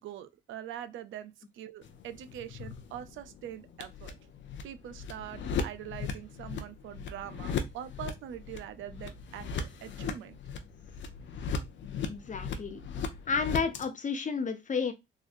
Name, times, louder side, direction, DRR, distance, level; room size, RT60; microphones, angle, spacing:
voice 1, 0.0-4.1 4.6-10.4, right 10 dB, 75° right, 0.5 m, -43 dB
sound 1, 1.8-13.8, left 5 dB, 70° left, 0.7 m, -38 dB
voice 2, 12.0-12.8 13.3-14.9, left 5 dB, 40° left, 0.9 m, -31 dB
3.7 x 3.1 x 2.5 m
cardioid pair, 90°, 20 cm